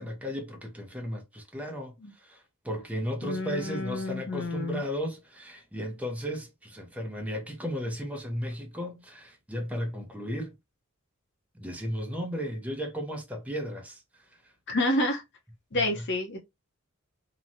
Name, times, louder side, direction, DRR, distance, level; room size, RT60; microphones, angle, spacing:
voice 1, 0.0-1.9 2.2-10.6 11.5-14.3 15.7-16.0, equal, 5° right, 0.6 m, -35 dB
voice 2, 3.2-4.8 14.7-15.2 15.7-16.4, left 1 dB, 60° left, 0.8 m, -29 dB
2.9 x 2.2 x 2.6 m
head